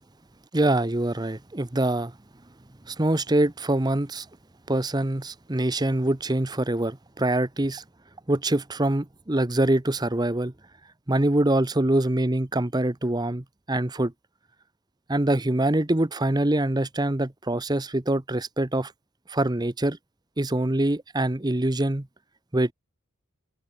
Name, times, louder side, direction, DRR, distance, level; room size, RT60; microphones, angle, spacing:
voice 1, 0.5-2.1 2.9-4.3 4.7-7.8 8.3-10.5 11.1-14.1 15.1-18.9 19.3-20.0 20.4-22.1 22.5-22.7, right 1 dB, 20° right, 0.8 m, -24 dB
head